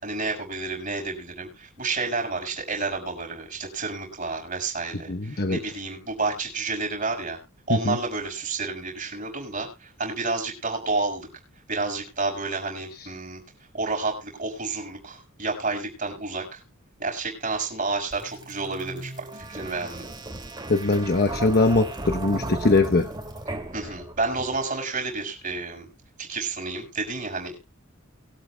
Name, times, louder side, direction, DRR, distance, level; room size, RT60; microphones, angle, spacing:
voice 1, 0.0-7.4 7.7-11.3 11.7-13.4 13.7-16.6 17.0-20.0 23.7-25.9 26.2-27.6, right 3 dB, 40° right, 2 dB, 6.2 m, -30 dB
voice 2, 5.1-5.6 7.7-8.0 20.7-23.1, left 2 dB, 45° left, 4 dB, 1.0 m, -21 dB
sound 1, 18.1-24.8, right 2 dB, 20° right, 2.5 m, -36 dB
23.0 x 8.7 x 2.3 m, 0.28 s
head